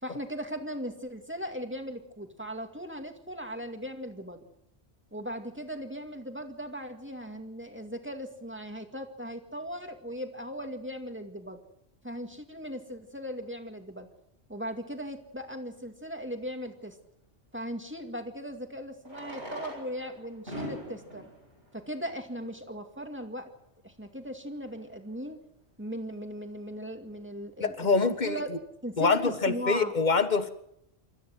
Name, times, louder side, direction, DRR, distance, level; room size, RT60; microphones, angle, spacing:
voice 1, 0.0-4.4 5.1-11.6 12.0-14.1 14.5-17.0 17.5-21.3 21.7-23.5 23.8-25.4 25.8-28.5 28.8-29.9, equal, 10° right, 5 dB, 2.2 m, -38 dB
Fireworks, 15.4-15.5 17.8-17.9 19.0-22.7 23.5-23.6 23.8-23.9 24.1-24.2 24.7-24.9, equal, 85° right, 8.5 m, -43 dB
voice 2, 27.6-28.4 29.0-30.5, left 4 dB, 45° left, 10 dB, 1.6 m, -25 dB
27.5 x 13.5 x 7.9 m, 0.75 s
omnidirectional pair, 1.1 m